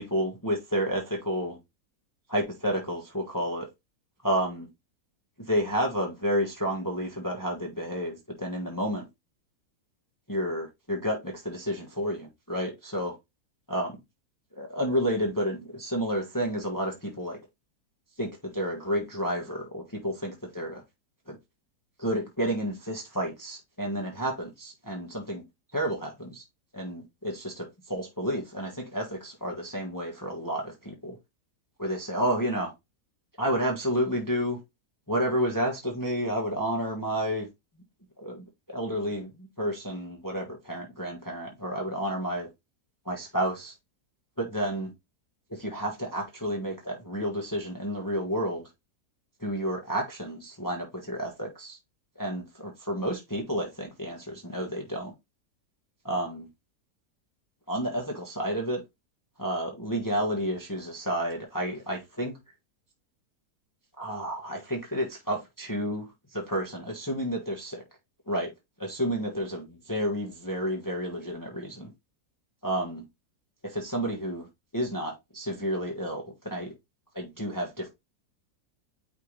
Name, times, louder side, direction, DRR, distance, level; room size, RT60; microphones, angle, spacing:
voice 1, 0.0-1.6 2.3-3.7 4.2-4.7 5.5-9.0 10.3-13.1 13.7-13.9 14.6-17.4 18.2-20.8 21.3-21.4 22.0-25.4 25.7-26.4 26.7-31.1 31.8-32.7 33.4-34.6 35.1-37.4 38.2-38.4 38.7-39.3 39.6-42.5 43.1-43.7 44.4-44.9 45.6-48.6 49.4-51.8 52.2-55.1 56.0-56.5 57.7-58.8 59.4-62.3 64.0-66.0 66.3-67.8 68.3-68.5 68.8-71.9 72.6-73.0 73.7-74.4 74.7-76.7 77.1-77.9, equal, 15° left, 1.4 m, -30 dB
9.2 x 3.4 x 3.2 m
omnidirectional pair, 1.7 m